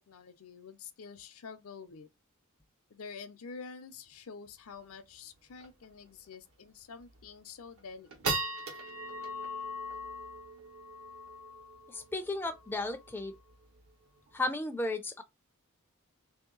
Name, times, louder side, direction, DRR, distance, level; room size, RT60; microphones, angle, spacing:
voice 1, 0.1-2.1 2.9-8.1, left 5 dB, 75° left, 0.5 m, -47 dB
sound 1, 4.7-4.8 5.1-5.2 5.6-5.8 6.3-6.4 7.0-7.3 7.8-14.4, right 1 dB, 80° right, 1.2 m, -40 dB
voice 2, 11.9-13.3 14.3-15.2, left 2 dB, 10° left, 0.4 m, -34 dB
3.0 x 2.8 x 3.7 m
head